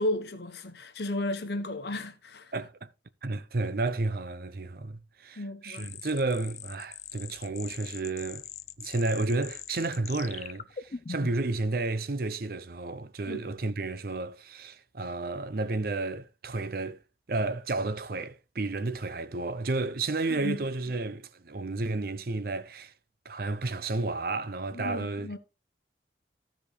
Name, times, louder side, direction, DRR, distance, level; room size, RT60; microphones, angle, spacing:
voice 1, 0.0-2.5 5.4-6.0 13.3-13.5 20.3-20.6 24.7-25.4, left 1 dB, 60° left, 1.1 m, -34 dB
voice 2, 2.5-2.9 3.2-8.5 8.8-17.0 17.3-22.9 23.2-25.4, right 3 dB, 50° right, 0.6 m, -32 dB
sound 1, 5.7-11.5, left 7 dB, 35° left, 0.4 m, -42 dB
15.5 x 5.2 x 3.2 m
head